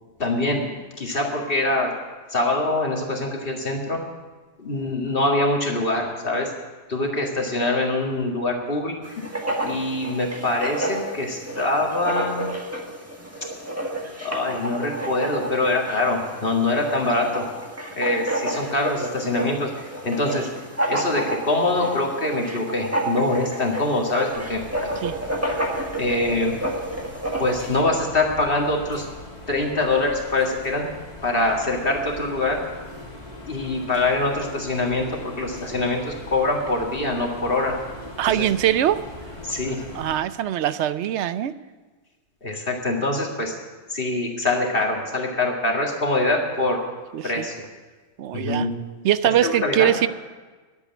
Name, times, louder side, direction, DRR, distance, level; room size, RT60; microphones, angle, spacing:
voice 1, 0.2-1.9 2.3-4.0 4.6-6.5 6.9-9.0 9.6-12.4 14.2-17.5 17.9-20.5 20.9-24.6 25.9-26.6 27.4-29.1 29.5-30.9 31.2-32.6 33.5-37.8 38.2-38.5 39.4-39.8 42.4-43.5 43.9-46.8 47.2-47.6 48.3-48.7 49.4-49.9, left 2 dB, 50° left, 0 dB, 2.2 m, -24 dB
Writing, 9.0-27.8, right 1 dB, 15° right, 1.6 m, -30 dB
sound 1, 24.3-40.2, left 1 dB, 35° left, 2.4 m, -40 dB
voice 2, 38.2-39.0 39.9-41.5 47.1-47.5 48.2-48.7 49.0-50.1, right 11 dB, 80° right, 14 dB, 0.9 m, -22 dB
11.0 x 8.3 x 9.4 m, 1.3 s
omnidirectional pair, 1.2 m